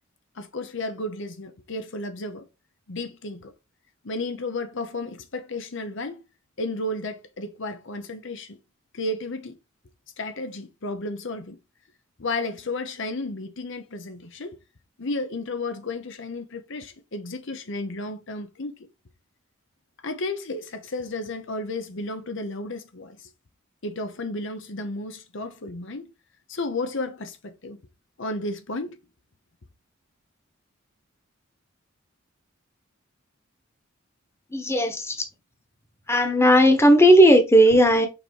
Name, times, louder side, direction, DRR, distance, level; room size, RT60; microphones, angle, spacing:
voice 1, 0.4-2.4 2.9-3.5 4.0-6.2 6.6-8.6 8.9-9.5 10.2-11.6 12.2-14.6 15.0-18.9 20.0-23.3 23.8-26.1 26.5-27.8 28.2-29.0, left 2 dB, 65° left, 0.9 m, -33 dB
voice 2, 34.5-35.2 36.1-38.1, equal, 15° left, 1.2 m, -16 dB
5.9 x 4.3 x 4.7 m
head